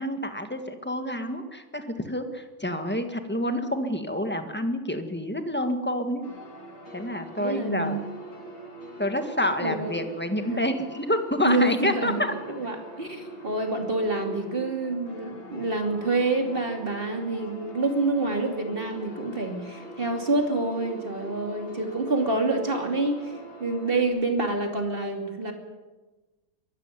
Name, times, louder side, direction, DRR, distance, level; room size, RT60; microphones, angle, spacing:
voice 1, 0.0-6.2 6.9-8.0 9.0-12.3, left 1 dB, 5° left, 7 dB, 1.4 m, -28 dB
sound 1, 6.2-24.1, right 1 dB, 75° left, 5.0 m, -43 dB
voice 2, 7.4-8.0 9.6-10.0 10.4-10.6 11.4-23.2 23.6-25.5, right 2 dB, 25° right, 4 dB, 2.8 m, -27 dB
23.0 x 14.0 x 9.8 m, 1.2 s
omnidirectional pair, 2.2 m